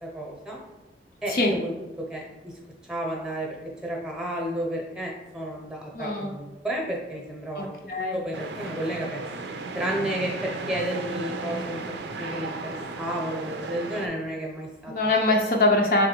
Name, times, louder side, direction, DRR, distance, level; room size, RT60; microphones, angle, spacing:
voice 1, 0.0-0.6 1.2-1.7 2.1-2.5 2.9-3.6 3.8-9.2 9.7-15.1, right 1 dB, 5° right, -1 dB, 0.8 m, -32 dB
voice 2, 5.9-6.3 7.6-8.2 14.9-16.1, left 2 dB, 50° left, 0 dB, 0.5 m, -23 dB
sound 1, 8.3-14.1, right 3 dB, 80° right, 0.5 m, -35 dB
3.7 x 3.1 x 4.4 m, 1.0 s
head